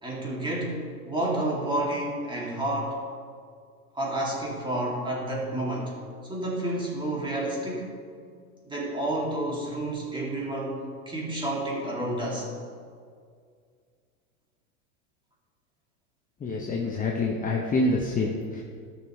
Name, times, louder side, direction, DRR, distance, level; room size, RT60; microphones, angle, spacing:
voice 1, 0.0-3.0 3.9-6.0 6.3-7.9 8.7-12.5, right 1 dB, 10° right, -4 dB, 2.5 m, -30 dB
voice 2, 16.4-18.6, left 2 dB, 20° left, 0 dB, 0.9 m, -26 dB
13.5 x 6.3 x 3.2 m, 2.2 s
hypercardioid pair, 105°, 44 cm